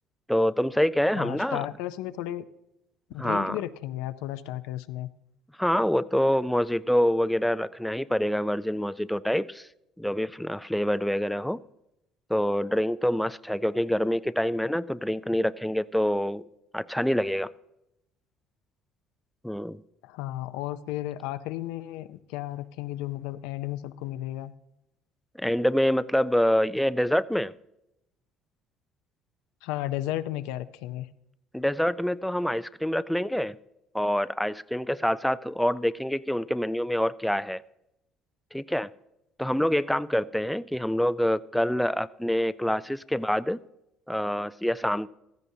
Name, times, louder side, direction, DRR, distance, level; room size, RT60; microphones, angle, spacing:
voice 1, 0.3-1.7 3.2-3.6 5.6-9.7 10.0-11.6 12.3-16.4 16.7-17.5 19.4-19.8 25.4-27.5 31.5-33.6 33.9-37.6 38.5-38.9 39.4-43.6 44.1-45.1, equal, ahead, 0.4 m, -26 dB
voice 2, 1.2-2.4 3.1-5.1 20.0-24.5 29.6-31.1, left 14 dB, 85° left, 0.5 m, -34 dB
15.5 x 13.5 x 2.7 m
supercardioid pair, 85°, 0 cm